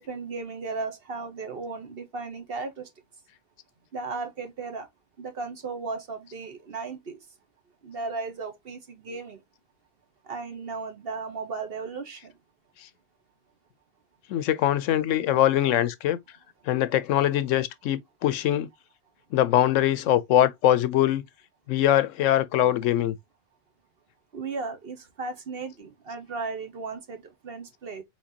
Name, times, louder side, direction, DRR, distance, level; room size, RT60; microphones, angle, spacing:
voice 1, 0.0-2.9 3.9-4.9 5.2-7.2 7.8-9.4 10.3-12.3 24.3-28.0, right 4 dB, 50° right, 1.2 m, -35 dB
voice 2, 14.3-16.2 16.7-18.7 19.3-21.2 21.7-23.2, left 12 dB, 85° left, 0.9 m, -22 dB
4.5 x 3.8 x 2.7 m
omnidirectional pair, 1.3 m